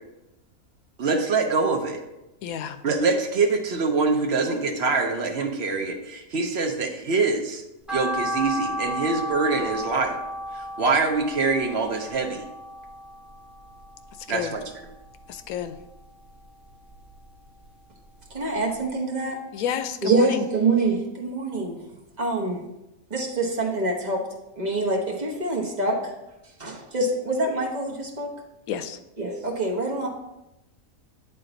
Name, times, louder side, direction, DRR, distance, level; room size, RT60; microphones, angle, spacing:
voice 1, 1.0-2.0 2.8-7.6 7.9-10.2 10.5-12.5 14.3-14.6, right 4 dB, 55° right, 3 dB, 1.0 m, -24 dB
voice 2, 2.4-2.8 14.3-14.5 15.3-15.7 19.5-20.4 28.7-29.0, left 8 dB, 85° left, 10 dB, 1.0 m, -30 dB
sound 1, 7.9-14.2 14.6-15.7 16.1-17.5 17.8-17.9 18.4-18.5 18.8-18.9, equal, ahead, 1.8 m, -33 dB
voice 3, 18.3-19.4 20.0-21.8 22.2-22.6 23.1-24.2 24.6-26.0 26.6-28.3 29.2-30.1, right 2 dB, 35° right, -2 dB, 1.1 m, -25 dB
9.2 x 3.7 x 3.9 m, 0.94 s
omnidirectional pair, 1.5 m